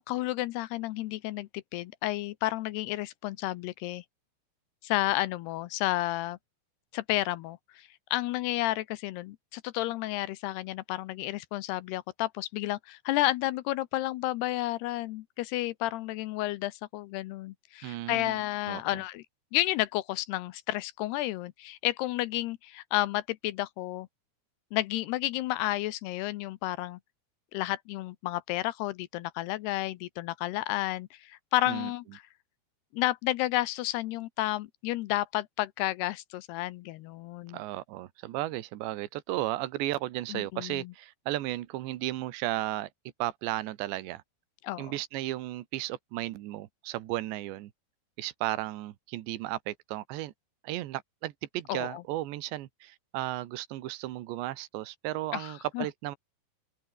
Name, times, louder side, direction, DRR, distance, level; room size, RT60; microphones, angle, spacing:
voice 1, 0.0-4.0 4.8-6.4 6.9-19.2 19.5-24.1 24.7-27.0 27.5-32.2 32.9-37.6 40.3-40.9 44.6-44.9 51.7-52.0 55.3-55.9, left 16 dB, 80° left, 2.5 m, -31 dB
voice 2, 17.8-18.4 18.7-18.8 31.7-31.9 37.5-42.9 43.2-44.2 44.8-47.7 48.2-50.3 50.6-56.2, right 16 dB, 80° right, 3.5 m, -34 dB
omnidirectional pair, 5.1 m